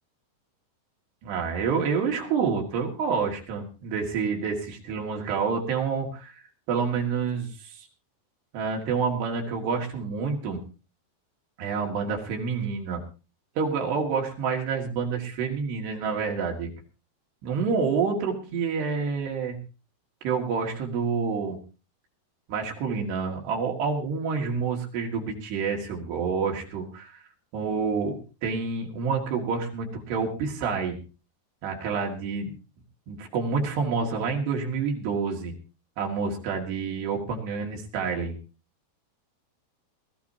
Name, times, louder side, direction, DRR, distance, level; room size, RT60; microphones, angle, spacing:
voice 1, 1.2-6.4 6.7-7.9 8.5-10.6 11.6-13.0 13.6-16.7 17.4-19.6 20.2-21.6 22.5-27.2 27.5-28.2 28.4-31.0 31.6-32.5 33.1-35.5 36.0-38.4, right 5 dB, 75° right, 0 dB, 4.3 m, -28 dB
21.0 x 14.0 x 2.8 m, 0.33 s
omnidirectional pair, 4.8 m